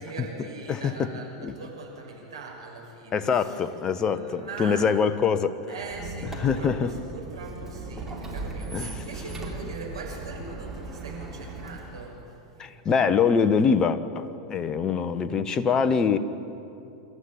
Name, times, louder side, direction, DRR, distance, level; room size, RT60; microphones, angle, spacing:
voice 1, 0.0-5.0 5.7-12.2, right 4 dB, 75° right, -1 dB, 6.4 m, -41 dB
voice 2, 0.7-1.1 1.4-1.5 3.1-5.6 6.4-6.9 8.7-9.0 12.6-16.2, left 6 dB, 25° left, 12 dB, 1.2 m, -24 dB
Squeak, 5.8-12.2, right 3 dB, 10° right, 4.3 m, -38 dB
27.0 x 13.5 x 9.9 m, 2.8 s
figure-of-eight pair, 90°, 3 cm